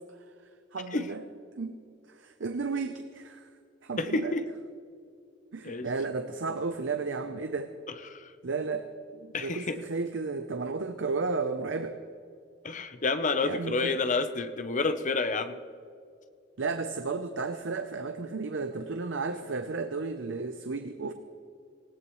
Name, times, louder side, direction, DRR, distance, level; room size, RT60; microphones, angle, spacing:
voice 1, 0.7-1.2 1.6-1.8 2.2-3.5 3.8-4.3 5.5-7.7 8.4-12.0 13.4-14.0 16.6-21.1, right 4 dB, 70° right, 8 dB, 0.7 m, -33 dB
voice 2, 4.0-4.4 5.6-5.9 8.0-8.3 9.3-9.8 12.6-15.6, left 3 dB, 40° left, 9 dB, 0.8 m, -29 dB
20.0 x 17.0 x 3.2 m, 2.4 s
head